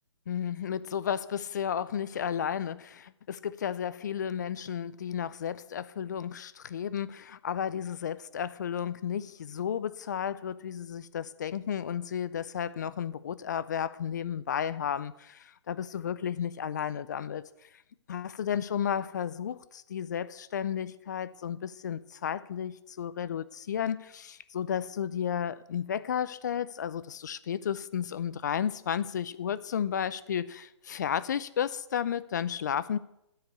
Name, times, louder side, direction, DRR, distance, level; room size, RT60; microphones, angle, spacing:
voice 1, 0.3-17.7 18.1-33.0, left 8 dB, 35° left, 0.4 m, -33 dB
13.0 x 4.8 x 6.7 m
hypercardioid pair, 160°, 16 cm